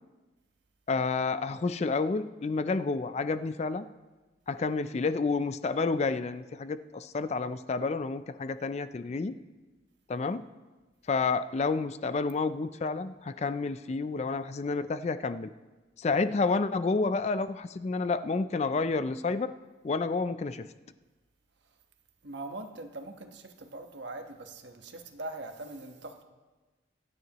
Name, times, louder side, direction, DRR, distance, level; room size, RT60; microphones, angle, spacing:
voice 1, 0.9-3.9 4.5-9.3 10.1-10.5 11.1-15.5 16.0-19.5 19.8-20.7, left 4 dB, 35° left, 13 dB, 0.3 m, -30 dB
voice 2, 22.2-26.2, right 2 dB, 65° right, 5 dB, 1.2 m, -42 dB
24.5 x 9.5 x 3.0 m, 1.2 s
head